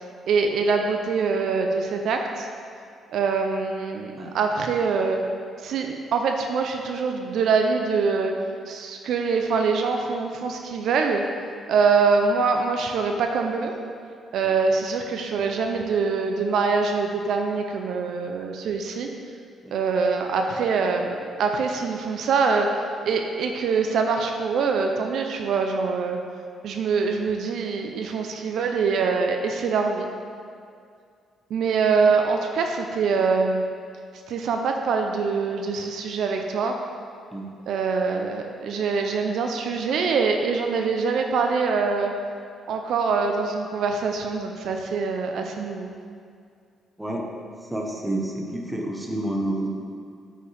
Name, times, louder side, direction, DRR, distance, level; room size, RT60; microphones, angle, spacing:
voice 1, 0.3-2.5 3.1-5.2 5.6-8.3 8.7-11.2 11.7-13.7 14.3-19.1 19.7-22.7 23.1-26.2 26.6-30.1 31.5-33.6 34.3-36.7 37.7-42.1 42.7-45.9, right 5 dB, 75° right, 4 dB, 0.6 m, -24 dB
voice 2, 47.0-47.3 47.7-49.7, right 1 dB, 10° right, -1 dB, 1.4 m, -29 dB
8.7 x 7.5 x 3.6 m, 2.3 s
cardioid pair, 90°, 0 cm